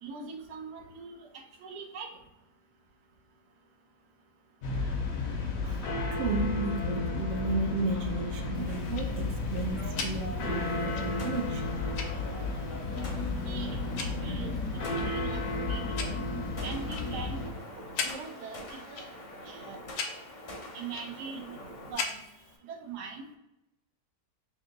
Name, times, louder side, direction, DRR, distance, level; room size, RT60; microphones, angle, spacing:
voice 1, 0.0-2.1 13.1-15.4 15.7-16.2 16.6-19.1 19.4-19.8 20.7-21.5 21.9-22.2 22.7-23.4, right 4 dB, 80° right, 2 dB, 1.2 m, -42 dB
sound 1, 4.6-17.5, left 3 dB, 65° left, 1.0 m, -33 dB
voice 2, 5.2-11.8, right 2 dB, 60° right, 2 dB, 0.8 m, -34 dB
sound 2, 7.4-21.9, left 1 dB, 40° left, 0.7 m, -45 dB
Tick-tock, 8.5-22.6, left 5 dB, 85° left, 1.2 m, -42 dB
3.5 x 2.8 x 3.7 m, 0.86 s
omnidirectional pair, 1.8 m